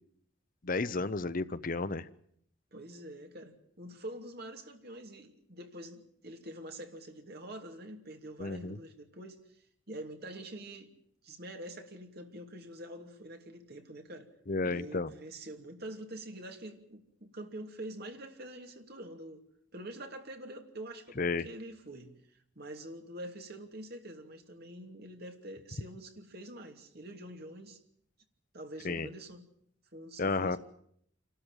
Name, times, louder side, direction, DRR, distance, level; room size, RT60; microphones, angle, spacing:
voice 1, 0.6-2.1 8.4-8.8 14.5-15.1 21.2-21.5 28.8-29.1 30.2-30.6, left 3 dB, 45° left, 0.8 m, -32 dB
voice 2, 2.7-9.4 9.9-10.9 11.2-14.3 14.6-19.4 19.7-22.1 22.6-27.8 28.5-29.4 29.9-30.6, right 1 dB, 55° right, 2.8 m, -45 dB
27.5 x 13.0 x 9.0 m
head